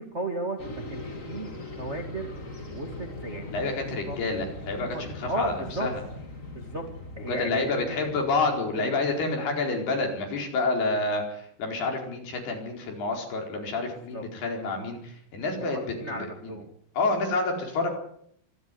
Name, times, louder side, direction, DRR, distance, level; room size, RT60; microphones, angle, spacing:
voice 1, 0.0-2.3 2.7-3.5 4.0-4.2 4.8-5.9 6.5-6.8 7.2-8.0 8.7-9.0 14.1-14.2 15.6-16.7, right 1 dB, 55° right, 4 dB, 0.7 m, -34 dB
sound 1, 0.6-8.9, left 2 dB, 20° left, 2.3 m, -40 dB
voice 2, 3.5-6.0 7.3-16.6 16.9-17.9, left 3 dB, 55° left, 2 dB, 6.3 m, -29 dB
25.0 x 13.0 x 9.8 m, 0.69 s
omnidirectional pair, 5.6 m